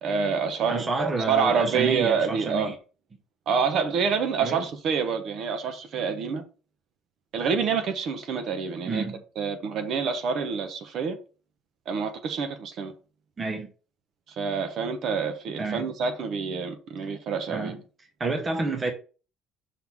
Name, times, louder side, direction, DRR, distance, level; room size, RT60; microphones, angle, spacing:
voice 1, 0.0-2.7 3.5-6.4 7.3-9.0 9.4-11.2 11.9-12.9 14.4-17.8, right 6 dB, 45° right, 1.0 m, -27 dB
voice 2, 0.7-2.8 4.4-4.7 8.9-9.2 13.4-13.7 15.6-15.9 17.5-17.8 18.2-18.9, right 3 dB, 20° right, 0.8 m, -29 dB
5.6 x 3.8 x 4.6 m
cardioid pair, 170°, 0 cm